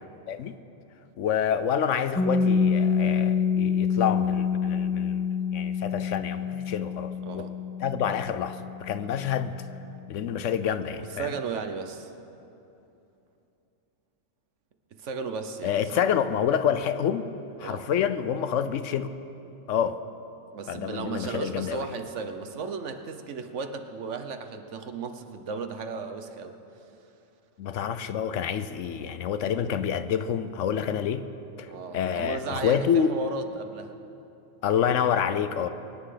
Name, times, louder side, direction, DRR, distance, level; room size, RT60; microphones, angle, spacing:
voice 1, 1.2-5.2 5.5-7.5 7.8-9.6 10.1-11.3 15.6-17.3 17.6-19.1 19.7-20.0 20.7-21.9 27.6-31.2 31.6-33.1 34.6-35.7, left 8 dB, 70° left, 12 dB, 1.0 m, -27 dB
Piano, 2.2-9.4, left 6 dB, 10° left, 0.6 m, -27 dB
voice 2, 7.2-7.6 11.0-12.1 15.0-16.0 17.6-17.9 20.5-26.6 31.7-34.0 35.6-35.7, right 4 dB, 65° right, 7 dB, 1.2 m, -35 dB
23.0 x 9.7 x 5.0 m, 2.8 s
omnidirectional pair, 1.4 m